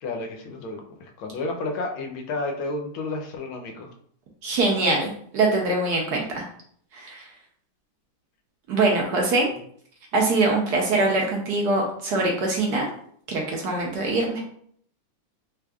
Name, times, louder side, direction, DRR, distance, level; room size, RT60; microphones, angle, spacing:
voice 1, 0.0-3.9, left 2 dB, 90° left, 2 dB, 1.4 m, -31 dB
voice 2, 4.4-6.5 6.9-7.3 8.7-9.5 10.1-12.9 13.3-14.4, right 2 dB, 65° right, 0 dB, 1.0 m, -23 dB
3.7 x 3.3 x 2.3 m, 0.62 s
omnidirectional pair, 2.2 m